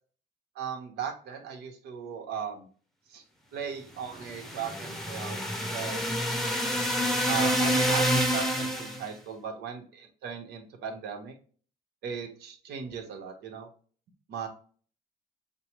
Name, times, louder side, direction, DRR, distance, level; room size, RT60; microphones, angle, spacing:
voice 1, 0.5-2.7 3.1-3.2 3.5-5.4 5.7-6.0 7.3-11.3 12.0-13.7 14.3-14.5, right 7 dB, 75° right, 2 dB, 1.3 m, -37 dB
sound 1, 4.1-9.1, equal, ahead, 0.8 m, -28 dB
6.7 x 2.3 x 3.0 m, 0.42 s
cardioid pair, 110°, 17 cm